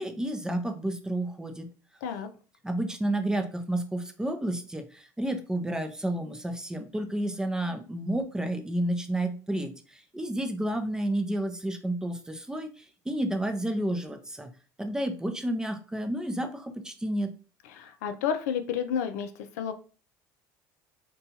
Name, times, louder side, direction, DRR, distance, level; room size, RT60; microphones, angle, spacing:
voice 1, 0.0-1.7 2.6-14.5 14.8-17.3, right 1 dB, 10° right, 6 dB, 0.4 m, -31 dB
voice 2, 17.7-19.3 19.6-19.7, left 8 dB, 90° left, 8 dB, 0.4 m, -30 dB
2.7 x 2.2 x 2.7 m, 0.37 s
supercardioid pair, 100°, 9 cm